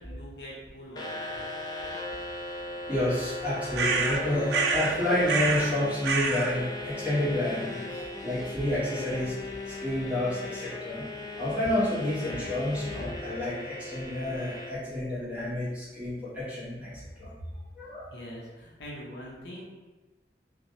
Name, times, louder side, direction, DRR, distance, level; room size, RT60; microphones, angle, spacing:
voice 1, 0.0-1.5 17.4-17.5 18.1-19.6, equal, 75° left, -4 dB, 0.7 m, -43 dB
sound 1, 1.0-14.7, left 2 dB, 25° left, 0.3 m, -38 dB
voice 2, 2.9-9.3 9.7-11.0 11.4-16.9 17.2-17.3 17.8-18.1, left 1 dB, 10° right, -11 dB, 1.1 m, -29 dB
sound 2, 3.7-5.0 5.3-5.7 6.0-6.5, right 4 dB, 65° right, 0.3 m, -27 dB
2.7 x 2.2 x 3.0 m, 1.1 s
head